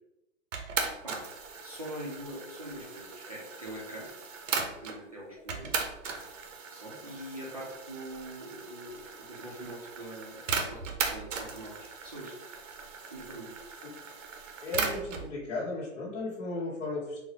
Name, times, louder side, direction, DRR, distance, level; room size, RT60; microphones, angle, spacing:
sound 1, 0.5-5.0 5.5-15.3, right 5 dB, 70° right, 0.7 m, -37 dB
voice 1, 1.6-4.1 4.8-5.8 6.7-12.4 13.1-13.5, right 1 dB, 30° right, -5 dB, 0.4 m, -43 dB
voice 2, 14.6-17.2, left 2 dB, 60° left, -7 dB, 1.2 m, -35 dB
3.9 x 2.0 x 2.8 m, 0.90 s
hypercardioid pair, 170°, 39 cm